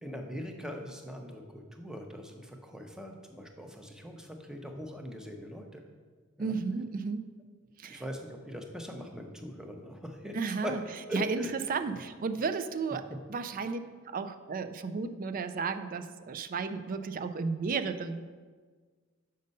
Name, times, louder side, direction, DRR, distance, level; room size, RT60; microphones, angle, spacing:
voice 1, 0.0-5.8 6.4-6.6 7.9-10.4 10.6-10.7 11.1-11.6, equal, 5° right, 3 dB, 0.7 m, -41 dB
voice 2, 6.4-7.3 7.8-8.0 10.3-10.8 11.1-11.4 11.7-13.8 14.1-18.3, right 4 dB, 40° right, 10 dB, 0.4 m, -33 dB
6.6 x 5.3 x 5.3 m, 1.5 s
head